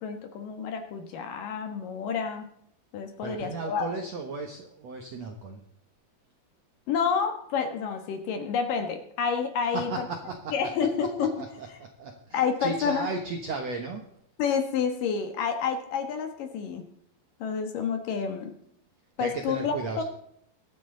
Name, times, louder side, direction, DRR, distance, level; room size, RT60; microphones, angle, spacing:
voice 1, 0.0-2.5 2.9-3.8 6.9-10.1 10.5-11.3 12.3-13.1 14.4-16.8 17.4-18.5 19.2-20.0, left 6 dB, 65° left, 6 dB, 2.8 m, -29 dB
voice 2, 3.2-5.6 9.7-10.7 11.2-14.1 19.2-20.0, right 3 dB, 65° right, 3 dB, 1.7 m, -35 dB
23.0 x 8.7 x 3.9 m, 0.67 s
omnidirectional pair, 4.6 m